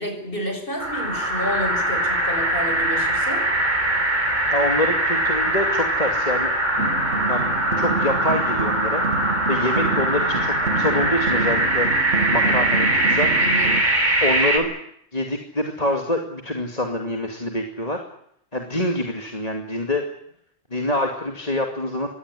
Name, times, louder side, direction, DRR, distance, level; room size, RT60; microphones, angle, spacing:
voice 1, 0.0-3.5 13.4-13.8, equal, 50° left, 5 dB, 7.0 m, -30 dB
sound 1, 0.8-14.6, right 1 dB, 45° right, 5.3 m, -22 dB
voice 2, 4.5-6.5 7.3-7.4 7.8-9.0 9.5-11.9 12.3-13.3 14.2-14.7 15.1-18.0 18.5-20.0 20.7-22.1, left 1 dB, 35° left, 3 dB, 2.6 m, -25 dB
sound 2, 6.8-13.8, right 3 dB, 90° right, 2.8 m, -28 dB
24.0 x 17.5 x 9.9 m, 0.70 s
omnidirectional pair, 1.1 m